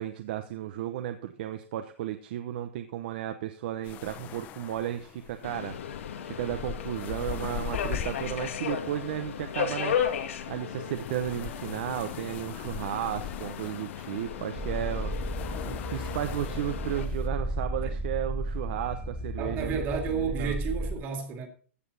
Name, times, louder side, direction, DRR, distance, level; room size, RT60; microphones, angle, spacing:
voice 1, 0.0-5.8 6.2-10.0 10.5-15.4 15.7-20.5, right 11 dB, 50° right, 0.9 m, -34 dB
sound 1, 3.8-17.3, left 10 dB, 25° left, 0.7 m, -42 dB
Subway metro underground, 5.4-17.1, left 8 dB, 80° left, 2.0 m, -35 dB
sound 2, 14.5-20.9, right 1 dB, ahead, 2.0 m, -34 dB
voice 2, 19.4-21.5, right 6 dB, 30° right, 2.2 m, -32 dB
15.0 x 7.4 x 4.1 m
supercardioid pair, 160°, 7 cm